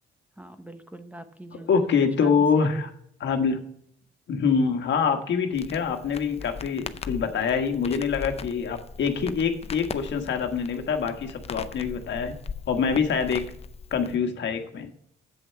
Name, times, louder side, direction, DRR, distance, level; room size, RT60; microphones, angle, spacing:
voice 1, 0.4-2.8, right 1 dB, 5° right, 8 dB, 0.9 m, -43 dB
voice 2, 1.7-2.9 3.2-3.6 4.3-12.3 12.7-13.4 13.9-14.9, left 6 dB, 65° left, 5 dB, 1.5 m, -25 dB
Crackle, 5.5-14.2, left 5 dB, 30° left, 0.6 m, -39 dB
7.9 x 7.9 x 5.7 m, 0.69 s
cardioid pair, 90°, 20 cm